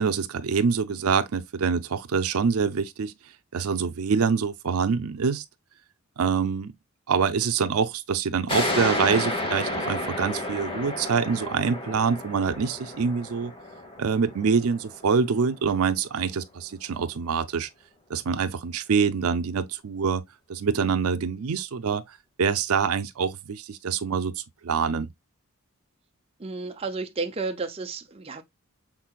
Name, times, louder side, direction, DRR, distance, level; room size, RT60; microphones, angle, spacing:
voice 1, 0.0-3.1 3.5-5.4 6.2-6.7 7.1-13.5 14.0-17.7 18.1-20.2 20.5-25.1, right 5 dB, 75° right, 0.5 m, -25 dB
sound 1, 8.5-15.7, left 1 dB, 25° left, 1.2 m, -31 dB
voice 2, 26.4-28.4, right 4 dB, 25° right, 0.6 m, -32 dB
6.0 x 3.8 x 2.4 m
head